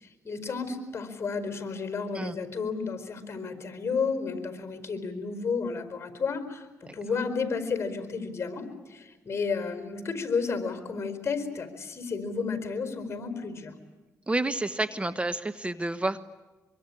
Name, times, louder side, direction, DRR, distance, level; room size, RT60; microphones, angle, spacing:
voice 1, 0.0-13.7, left 5 dB, 45° left, 8 dB, 4.6 m, -32 dB
voice 2, 14.3-16.3, right 2 dB, 20° right, 12 dB, 1.1 m, -29 dB
25.0 x 24.0 x 9.8 m, 1.2 s
cardioid pair, 70°, 6 cm